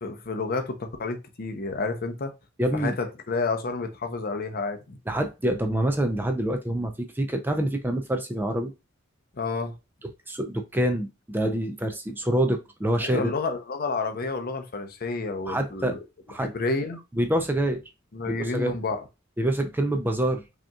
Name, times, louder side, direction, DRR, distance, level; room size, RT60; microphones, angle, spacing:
voice 1, 0.0-2.3 2.7-5.0 9.4-9.7 13.0-16.0 16.4-17.0 18.1-19.0, left 3 dB, 45° left, 0.6 m, -30 dB
voice 2, 2.6-3.0 5.1-8.7 10.3-13.3 15.4-16.0 16.3-16.5 17.1-17.8 18.4-18.7 19.4-20.4, right 1 dB, 10° right, 0.4 m, -26 dB
5.0 x 2.9 x 2.3 m
head